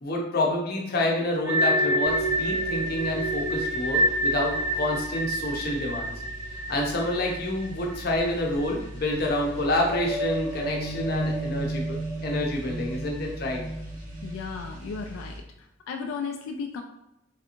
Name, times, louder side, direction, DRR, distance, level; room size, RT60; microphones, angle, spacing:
voice 1, 0.0-6.1 6.7-12.0 12.2-13.6, left 1 dB, 50° left, -1 dB, 0.6 m, -28 dB
sound 1, 1.5-8.3 8.6-8.7 9.2-14.6, right 1 dB, 5° right, 0.9 m, -29 dB
sound 2, 2.0-15.4, right 1 dB, 40° right, 0.8 m, -42 dB
voice 2, 14.2-15.4 15.9-16.8, left 5 dB, 85° left, 3 dB, 0.3 m, -34 dB
3.2 x 2.8 x 2.5 m, 0.87 s
head